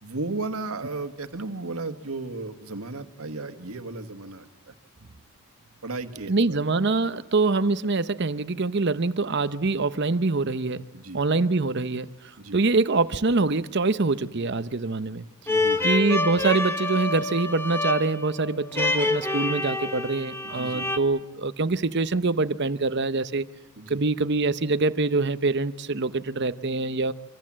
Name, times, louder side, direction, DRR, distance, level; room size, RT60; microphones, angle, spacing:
voice 1, 0.0-4.7 5.8-6.6 10.9-11.2 12.4-12.6 15.5-15.9 20.4-20.9 23.8-24.0, right 3 dB, 80° right, 9 dB, 1.8 m, -35 dB
voice 2, 6.3-10.8 11.1-12.1 12.5-15.2 15.8-23.5 23.9-27.1, right 3 dB, 50° right, 13 dB, 0.8 m, -24 dB
sound 1, 15.5-21.0, left 2 dB, 10° left, 1.2 m, -27 dB
27.0 x 25.0 x 7.6 m, 0.99 s
head